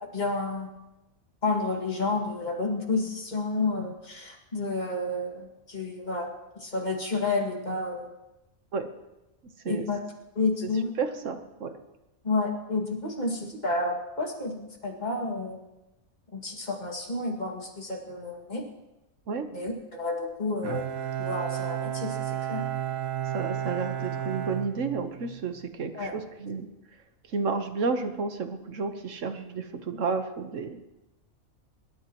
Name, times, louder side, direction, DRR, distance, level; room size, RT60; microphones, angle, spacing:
voice 1, 0.1-0.7 1.4-8.1 9.7-10.0 10.4-10.9 12.2-15.6 16.3-18.6 19.5-20.8 21.2-22.6 25.9-26.2, left 3 dB, 30° left, 1 dB, 2.2 m, -30 dB
voice 2, 11.0-11.7 19.3-19.5 23.3-26.7 27.3-30.8, right 4 dB, 65° right, 8 dB, 1.5 m, -31 dB
Bowed string instrument, 20.6-25.5, right 10 dB, 80° right, 1.5 m, -32 dB
24.5 x 12.5 x 3.0 m, 0.98 s
omnidirectional pair, 1.4 m